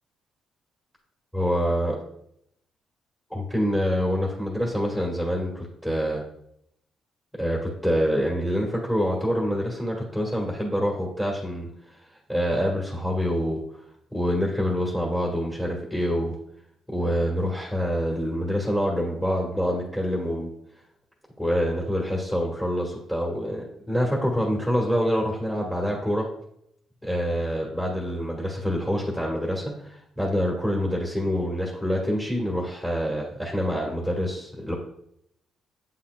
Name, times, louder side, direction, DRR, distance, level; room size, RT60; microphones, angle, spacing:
voice 1, 1.3-2.0 3.3-6.2 7.3-11.9 12.3-13.8 14.1-16.3 16.9-20.5 21.4-26.3 27.0-34.7, equal, 10° left, -3 dB, 1.7 m, -26 dB
8.3 x 5.7 x 2.4 m, 0.72 s
cardioid pair, 90°, 0 cm